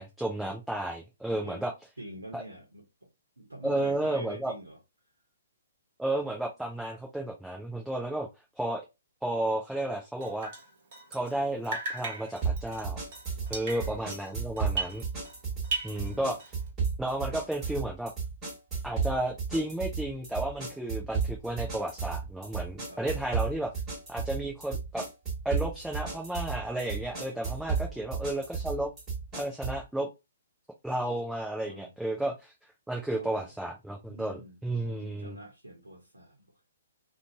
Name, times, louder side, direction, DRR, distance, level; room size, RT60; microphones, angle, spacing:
voice 1, 0.0-1.7 2.3-2.4 3.6-4.5 6.0-8.3 8.6-8.8 9.2-10.5 11.1-13.0 13.5-15.0 15.8-16.5 17.0-18.1 18.8-23.7 24.1-25.1 25.4-28.9 29.3-30.1 30.8-32.5 32.9-35.4, right 1 dB, ahead, 0.4 m, -32 dB
voice 2, 2.0-3.1 3.4-4.8 13.4-13.7 15.8-16.3 22.9-23.0 27.7-28.2 31.6-31.9 33.1-33.5 34.1-34.6 34.8-36.7, right 1 dB, 80° right, 0.7 m, -46 dB
Drip, 10.2-11.4 11.6-15.4 15.6-16.7, right 3 dB, 40° right, 1.0 m, -37 dB
sound 1, 12.4-29.9, right 5 dB, 20° right, 1.3 m, -34 dB
2.5 x 2.2 x 2.8 m
figure-of-eight pair, 125°, 0 cm